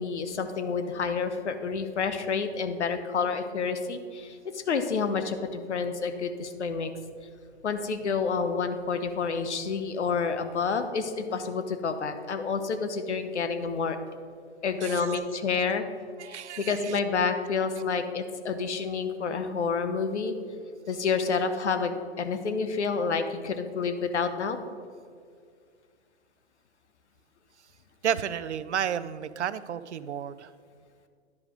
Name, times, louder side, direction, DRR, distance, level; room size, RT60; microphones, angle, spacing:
voice 1, 0.0-6.9 7.6-14.0 14.6-15.8 16.3-20.3 20.9-24.6, left 5 dB, 80° left, 8 dB, 1.0 m, -29 dB
voice 2, 14.8-15.2 16.2-17.0 28.0-30.5, right 9 dB, 85° right, 15 dB, 0.5 m, -32 dB
10.5 x 4.8 x 5.2 m, 2.1 s
hypercardioid pair, 125°, 34 cm